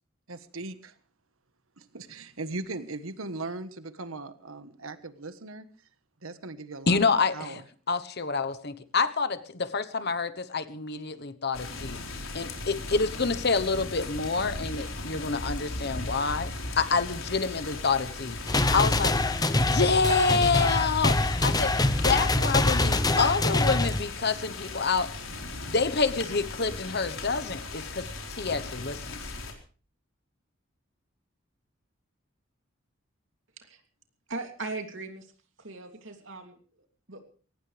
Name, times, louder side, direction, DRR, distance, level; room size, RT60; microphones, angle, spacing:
voice 1, 0.3-0.9 1.8-5.7 6.2-7.0 7.3-7.6, right 2 dB, 90° right, 11 dB, 1.4 m, -38 dB
voice 2, 6.9-7.6 7.9-12.0 12.3-16.5 16.8-18.4 18.7-19.1 19.5-25.1 25.7-28.1 28.4-29.2, left 4 dB, 50° left, 12 dB, 1.1 m, -27 dB
sound 1, 11.5-29.5, left 3 dB, 75° left, 4.3 m, -38 dB
sound 2, 18.5-24.0, left 2 dB, 20° left, 0.9 m, -24 dB
voice 3, 34.3-35.3 35.6-37.4, right 3 dB, 65° right, 4 dB, 3.0 m, -39 dB
22.5 x 18.5 x 3.4 m, 0.41 s
head